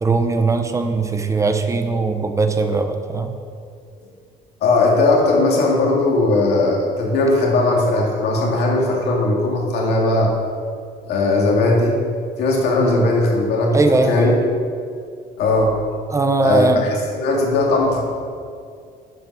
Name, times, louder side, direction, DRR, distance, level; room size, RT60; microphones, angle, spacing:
voice 1, 0.0-3.3 12.8-13.1 13.7-14.4 16.1-16.8, right 3 dB, 20° right, 6 dB, 0.9 m, -19 dB
voice 2, 4.6-10.3 11.1-12.0 12.4-13.8 14.1-14.4 15.4-15.8 16.4-18.0, left 2 dB, 80° left, -2 dB, 2.4 m, -18 dB
9.0 x 5.5 x 6.3 m, 2.3 s
cardioid pair, 110°, 17 cm